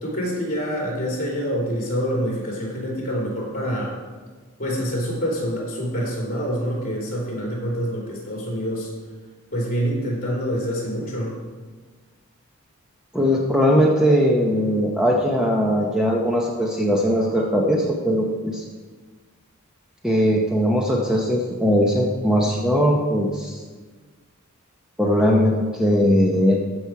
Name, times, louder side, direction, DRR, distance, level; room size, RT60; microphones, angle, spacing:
voice 1, 0.0-3.9 4.6-8.9 9.5-11.4, equal, 40° left, -4 dB, 3.6 m, -26 dB
voice 2, 13.1-18.6 20.0-23.6 25.0-26.6, equal, 5° right, -2 dB, 0.8 m, -20 dB
14.0 x 6.1 x 4.7 m, 1.4 s
head